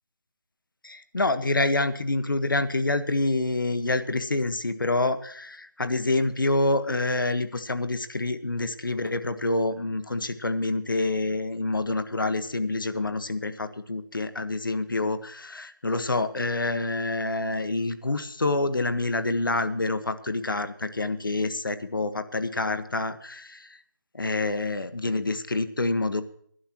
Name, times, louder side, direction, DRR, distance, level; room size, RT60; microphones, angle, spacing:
voice 1, 0.8-23.8 24.1-26.2, left 2 dB, 75° left, 11 dB, 1.5 m, -27 dB
21.0 x 11.0 x 3.0 m, 0.62 s
figure-of-eight pair, 180°, 11 cm